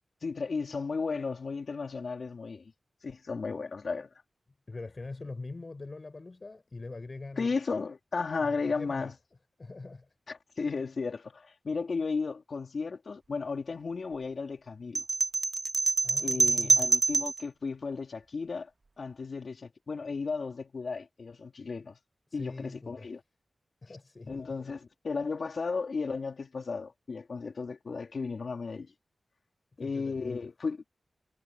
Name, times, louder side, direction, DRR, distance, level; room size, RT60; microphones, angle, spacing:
voice 1, 0.2-2.7 3.0-4.1 7.4-9.1 10.3-15.0 16.2-18.7 19.0-22.0 22.3-23.2 24.3-28.9 29.8-30.8, left 4 dB, 65° left, 3.7 m, -34 dB
voice 2, 4.7-7.5 8.4-9.1 9.6-10.1 16.0-16.9 22.3-23.1 23.8-24.7 29.8-30.4, left 3 dB, 40° left, 7.6 m, -43 dB
sound 1, 14.9-17.4, right 3 dB, 50° right, 1.8 m, -26 dB
wide cardioid pair, 90°, 0 cm